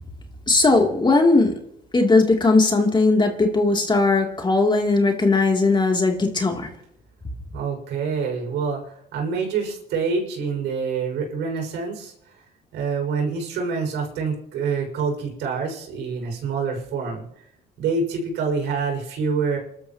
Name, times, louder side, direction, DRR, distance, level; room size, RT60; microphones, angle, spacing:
voice 1, 0.5-1.5 1.9-6.7, left 3 dB, 25° left, 2 dB, 3.2 m, -18 dB
voice 2, 7.5-12.1 12.7-17.3 17.8-19.6, right 5 dB, 75° right, 1 dB, 6.5 m, -26 dB
29.0 x 13.0 x 3.1 m, 0.75 s
supercardioid pair, 75°, 18 cm